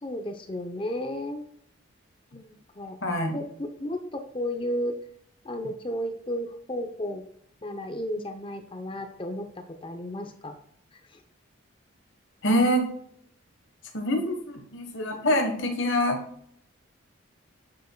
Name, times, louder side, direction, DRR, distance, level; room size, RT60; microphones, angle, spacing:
voice 1, 0.0-1.4 2.3-3.0 3.3-5.0 5.4-7.2 7.6-10.6 10.9-11.2, equal, 25° left, 7 dB, 0.6 m, -33 dB
voice 2, 3.0-3.4 12.4-12.9 13.9-16.2, equal, 65° left, 4 dB, 1.2 m, -25 dB
8.3 x 6.8 x 2.2 m, 0.67 s
head